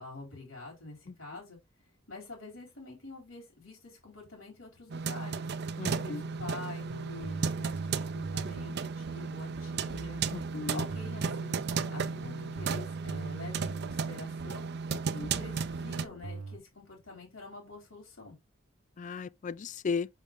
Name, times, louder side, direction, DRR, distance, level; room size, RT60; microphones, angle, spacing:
voice 1, 0.0-1.6 2.1-5.4 5.9-7.8 8.1-10.2 10.7-11.6 11.9-14.7 15.2-18.4, left 3 dB, 80° left, 3.8 m, -47 dB
sound 1, 4.9-16.1, right 5 dB, 55° right, 0.5 m, -34 dB
voice 2, 5.8-6.2 10.3-10.8 15.1-15.3 19.0-20.1, left 5 dB, 40° left, 0.4 m, -35 dB
sound 2, 5.9-16.6, right 3 dB, 70° right, 1.0 m, -44 dB
6.0 x 5.6 x 3.6 m
head